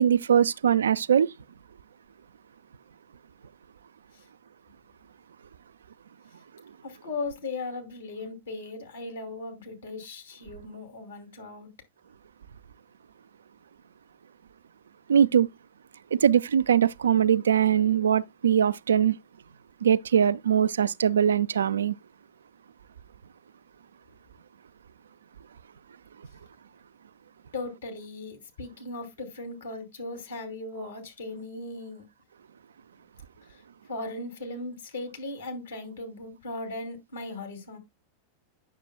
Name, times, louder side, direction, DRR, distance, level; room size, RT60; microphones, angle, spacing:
voice 1, 0.0-1.3 15.1-15.5 16.1-19.2 19.8-22.0, right 8 dB, 70° right, 0.3 m, -22 dB
voice 2, 6.8-11.7 27.5-32.1 33.9-37.8, left 2 dB, 70° left, 2.5 m, -37 dB
9.3 x 6.6 x 2.3 m
figure-of-eight pair, 90°, 0 cm